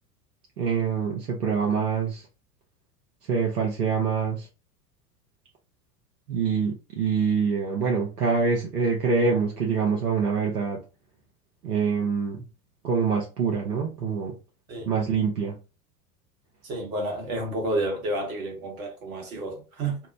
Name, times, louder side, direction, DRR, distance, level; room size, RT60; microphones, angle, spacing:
voice 1, 0.6-2.2 3.3-4.5 6.3-10.8 11.6-12.4 12.8-14.4 14.9-15.6, right 5 dB, 85° right, 0.8 m, -25 dB
voice 2, 16.6-20.0, right 1 dB, 65° right, 1.2 m, -30 dB
2.8 x 2.0 x 2.5 m
figure-of-eight pair, 85°, 45 cm